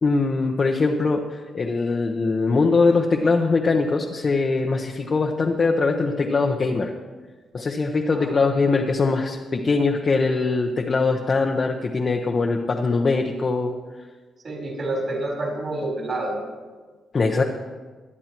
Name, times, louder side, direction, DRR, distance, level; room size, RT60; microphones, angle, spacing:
voice 1, 0.0-6.9 7.5-13.7 17.1-17.4, left 3 dB, 40° left, 1 dB, 0.9 m, -22 dB
voice 2, 8.1-8.6 14.4-16.4 17.3-17.4, right 2 dB, 40° right, -1 dB, 3.9 m, -29 dB
21.0 x 9.7 x 3.0 m, 1.4 s
cardioid pair, 105°, 0 cm